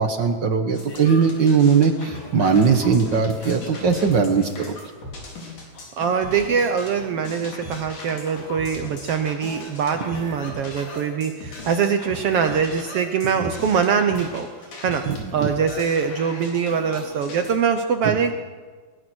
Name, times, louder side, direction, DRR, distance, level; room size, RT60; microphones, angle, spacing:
voice 1, 0.0-4.8 13.4-13.5 15.1-15.5 18.0-18.1, right 6 dB, 50° right, 6 dB, 1.5 m, -20 dB
sound 1, 0.7-17.6, left 2 dB, 75° left, 5.2 m, -38 dB
voice 2, 6.0-15.0 15.3-18.3, right 6 dB, 65° right, 7 dB, 1.5 m, -23 dB
21.0 x 20.0 x 6.3 m, 1.5 s
omnidirectional pair, 3.5 m